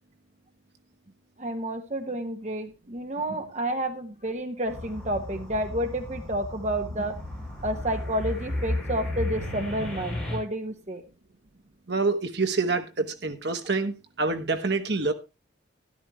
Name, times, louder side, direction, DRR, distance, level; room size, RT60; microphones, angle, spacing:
voice 1, 1.4-7.2 7.6-11.0, right 1 dB, 35° right, 1.0 m, -30 dB
sound 1, 4.7-10.4, left 1 dB, 5° left, 6.9 m, -34 dB
voice 2, 11.9-15.1, right 3 dB, 60° right, 1.2 m, -27 dB
13.0 x 12.0 x 3.1 m
head